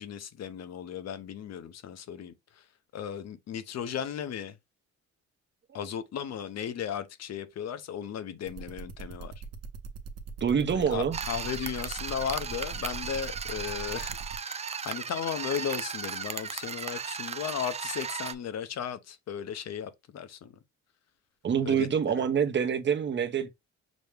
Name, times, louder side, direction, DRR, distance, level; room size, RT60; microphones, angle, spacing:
voice 1, 0.0-2.6 2.9-4.6 5.7-9.3 10.7-14.2 14.4-20.5 21.6-21.9 22.1-22.2, left 8 dB, 60° left, 0.7 m, -36 dB
sound 1, 8.5-14.4, right 5 dB, 55° right, 1.0 m, -41 dB
voice 2, 10.4-11.2 21.4-23.5, right 7 dB, 40° right, 0.8 m, -26 dB
sound 2, 11.1-18.3, right 6 dB, 25° right, 0.3 m, -36 dB
6.1 x 2.1 x 3.4 m
cardioid pair, 90°, 30 cm